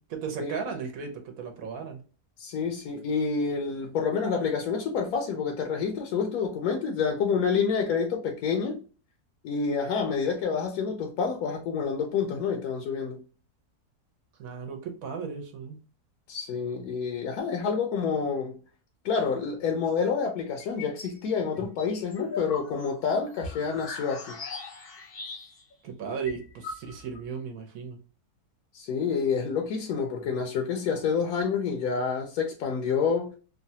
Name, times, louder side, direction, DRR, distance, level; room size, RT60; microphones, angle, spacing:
voice 1, 0.0-2.0 14.4-15.8 25.8-28.0, right 6 dB, 65° right, 1.1 m, -35 dB
voice 2, 2.4-8.8 9.4-13.2 16.3-18.6 19.0-24.4 28.7-33.4, left 5 dB, 75° left, 1.0 m, -28 dB
sound 1, 20.6-21.2 21.6-25.7 26.0-26.1 26.3-27.2, left 4 dB, 55° left, 0.7 m, -39 dB
3.1 x 2.2 x 2.7 m
omnidirectional pair, 1.7 m